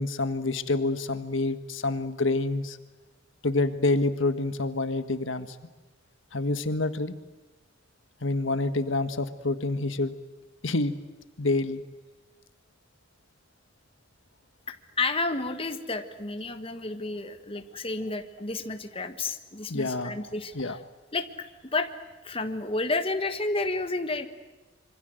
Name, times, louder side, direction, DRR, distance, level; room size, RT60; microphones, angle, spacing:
voice 1, 0.0-2.8 3.4-5.6 6.3-7.2 8.2-10.1 10.6-11.0 11.4-11.8 19.7-20.3 20.5-20.8, left 2 dB, 85° left, 10 dB, 1.6 m, -27 dB
voice 2, 15.0-20.8 21.1-21.3 21.7-21.9 22.2-24.3, left 3 dB, 30° left, 8 dB, 1.6 m, -31 dB
27.0 x 24.5 x 7.9 m, 1.2 s
head